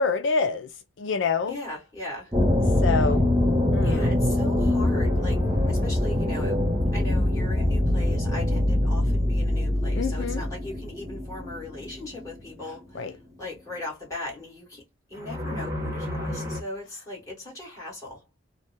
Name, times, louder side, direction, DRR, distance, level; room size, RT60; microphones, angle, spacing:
voice 1, 0.0-1.6 2.8-3.2 3.7-4.1 9.9-10.4 12.6-13.2, left 4 dB, 65° left, 0.4 m, -27 dB
voice 2, 1.5-2.3 3.8-6.6 6.9-13.1 13.4-14.8 15.1-18.2, left 2 dB, 15° left, 1.9 m, -38 dB
sound 1, 2.3-12.3 12.6-12.7 15.2-16.6, left 1 dB, 15° right, 0.7 m, -24 dB
3.2 x 2.2 x 2.7 m
head